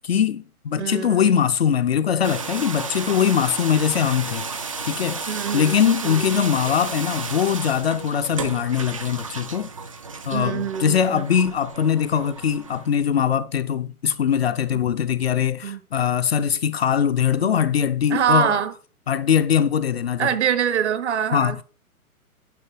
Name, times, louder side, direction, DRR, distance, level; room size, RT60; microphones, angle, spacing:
voice 1, 0.0-9.7 10.3-18.5 19.1-20.3 21.3-21.6, left 8 dB, 45° left, 0.6 m, -22 dB
voice 2, 0.8-1.4 5.3-6.5 10.3-11.2 14.7-14.8 15.6-15.8 17.4-17.5 18.1-18.7 20.2-21.6, right 8 dB, 50° right, 1.0 m, -25 dB
sound 1, 2.2-12.9, right 4 dB, 25° right, 0.4 m, -33 dB
10.5 x 5.4 x 4.6 m
figure-of-eight pair, 125°, 45 cm